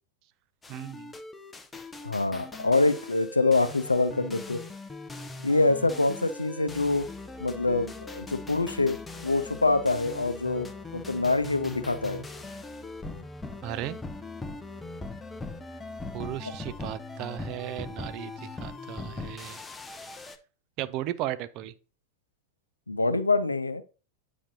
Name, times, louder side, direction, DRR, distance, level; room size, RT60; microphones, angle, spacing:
sound 1, 0.6-20.4, left 3 dB, 10° left, 0.6 m, -40 dB
voice 1, 0.7-1.1 13.6-14.0 16.1-19.6 20.8-21.7, right 13 dB, 40° right, 0.4 m, -35 dB
voice 2, 2.0-4.6 5.4-7.1 7.4-9.0 9.2-12.2 22.9-23.8, left 3 dB, 80° left, 0.5 m, -25 dB
8.6 x 4.8 x 2.7 m
figure-of-eight pair, 90°, 0 cm